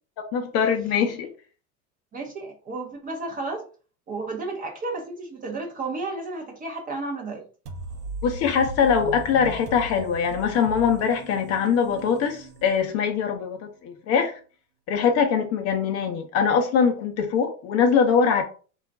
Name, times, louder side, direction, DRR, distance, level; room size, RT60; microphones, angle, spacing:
voice 1, 0.3-1.3 8.2-14.4 14.9-18.4, left 6 dB, 35° left, 0.5 m, -22 dB
voice 2, 2.1-3.6 4.1-7.4, right 3 dB, 20° right, 0.5 m, -32 dB
sound 1, 7.7-13.3, right 1 dB, 85° right, 0.6 m, -38 dB
2.3 x 2.1 x 3.5 m
hypercardioid pair, 95°, 43 cm